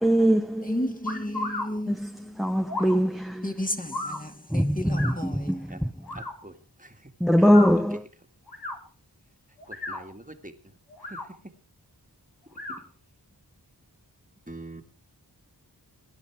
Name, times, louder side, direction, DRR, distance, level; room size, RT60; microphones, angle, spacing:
voice 1, 0.0-0.8 1.9-3.5 4.5-5.9 7.2-8.0, equal, ahead, 0.8 m, -22 dB
voice 2, 0.6-2.5 3.4-5.8, left 1 dB, 20° left, 2.1 m, -33 dB
sound 1, 1.0-1.7 2.7-3.0 3.9-4.2 4.9-5.1 6.0-6.3 7.4-7.7 8.5-8.8 9.6-10.0 10.9-11.3 12.5-12.8, left 2 dB, 65° left, 4.4 m, -33 dB
voice 3, 6.2-6.5 6.8-6.9 7.4-7.5 9.7-10.5 12.7-12.8 14.5-14.8, right 2 dB, 20° right, 1.9 m, -43 dB
21.0 x 10.5 x 4.6 m
wide cardioid pair, 60°, 40 cm